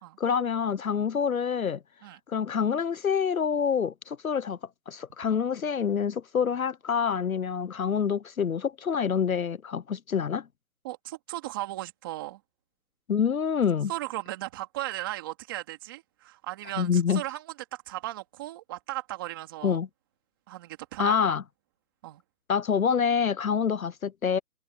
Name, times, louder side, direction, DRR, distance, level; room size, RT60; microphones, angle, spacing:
voice 1, 0.2-1.8 2.3-4.6 4.9-10.5 13.1-13.9 16.8-17.2 19.6-19.9 21.0-21.4 22.5-24.4, left 7 dB, 60° left, 0.9 m, -26 dB
voice 2, 10.8-12.4 13.9-19.8 20.5-21.4 22.0-22.2, right 17 dB, 15° right, 2.9 m, -36 dB
hypercardioid pair, 175°, 46 cm